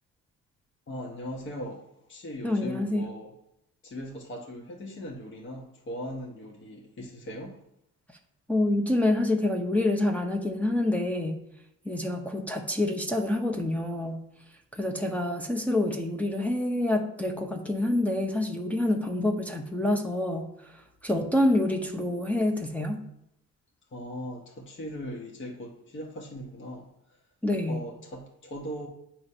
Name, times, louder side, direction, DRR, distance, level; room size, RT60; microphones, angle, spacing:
voice 1, 0.9-1.8 2.1-3.3 3.8-7.6 23.9-26.9 27.7-28.9, equal, 40° left, -1 dB, 1.3 m, -39 dB
voice 2, 2.4-3.1 8.5-11.4 11.8-14.2 14.7-20.5 21.0-23.0 27.4-27.8, left 1 dB, 5° left, 1 dB, 0.8 m, -27 dB
8.1 x 3.0 x 5.5 m, 0.79 s
cardioid pair, 90°, 30 cm